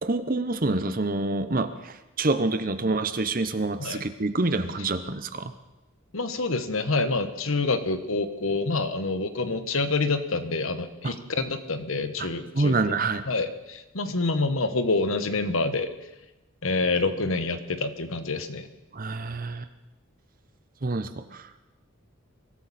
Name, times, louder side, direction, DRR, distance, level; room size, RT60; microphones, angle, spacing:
voice 1, 0.0-5.5 11.0-11.2 12.2-12.3 12.5-13.3 18.9-19.7 20.8-21.6, right 2 dB, 40° right, 11 dB, 0.9 m, -27 dB
voice 2, 6.1-12.7 13.3-15.9 16.6-18.7, left 3 dB, 70° left, 9 dB, 1.3 m, -27 dB
23.0 x 14.0 x 4.3 m, 1.0 s
head